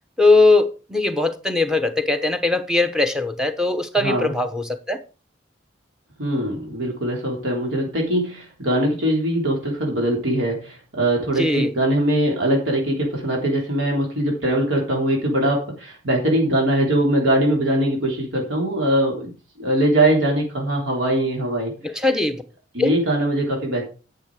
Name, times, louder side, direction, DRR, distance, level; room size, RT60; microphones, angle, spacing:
voice 1, 0.2-5.0 11.3-11.7 21.8-22.4 22.8-23.0, left 2 dB, 5° right, 0.9 m, -20 dB
voice 2, 4.0-4.3 6.2-19.3 19.6-21.7 22.7-23.9, right 1 dB, 85° right, 3.5 m, -21 dB
10.5 x 6.9 x 4.9 m
head